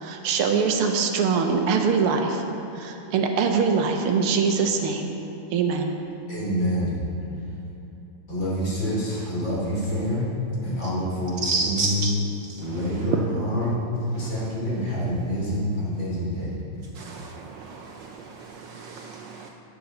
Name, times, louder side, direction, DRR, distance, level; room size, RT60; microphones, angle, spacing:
voice 1, 0.0-2.4 2.7-5.1 5.5-5.9, right 5 dB, 90° right, 4 dB, 1.8 m, -23 dB
voice 2, 6.3-7.0 8.3-10.3 10.6-12.1 12.6-13.8 14.1-16.5, equal, 60° left, -7 dB, 3.6 m, -27 dB
voice 3, 11.4-12.1 12.5-12.6 13.1-13.2 17.0-19.5, right 4 dB, 75° right, 2 dB, 1.1 m, -30 dB
12.0 x 9.2 x 3.9 m, 2.9 s
omnidirectional pair, 2.4 m